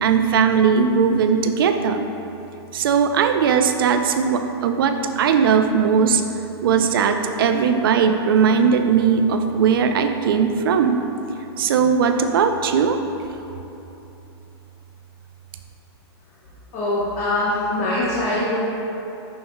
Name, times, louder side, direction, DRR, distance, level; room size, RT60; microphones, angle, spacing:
voice 1, 0.0-2.0 2.7-6.2 6.6-11.0 11.6-13.0, right 6 dB, 55° right, 7 dB, 0.4 m, -18 dB
voice 2, 16.7-18.7, left 1 dB, 20° left, -8 dB, 0.8 m, -23 dB
11.0 x 4.2 x 2.2 m, 3.0 s
hypercardioid pair, 170°, 14 cm